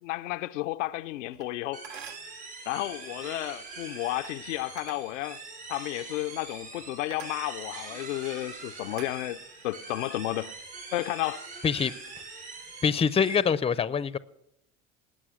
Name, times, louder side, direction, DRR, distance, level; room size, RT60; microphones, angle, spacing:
voice 1, 0.0-1.8 2.7-5.4 5.7-9.4 9.6-10.5 10.9-11.5, left 16 dB, 75° left, 0.6 m, -32 dB
sound 1, 1.3-1.5 1.8-2.4 4.1-4.3 4.8-5.1 6.0-6.2 7.1-7.4 8.1-8.3 8.9-9.7 10.2-10.5, right 8 dB, 65° right, 1.2 m, -47 dB
sound 2, 1.7-13.4, right 4 dB, 85° right, 7.5 m, -43 dB
voice 2, 12.8-14.2, left 6 dB, 15° left, 0.6 m, -24 dB
19.5 x 8.7 x 6.3 m
hypercardioid pair, 75°, 37 cm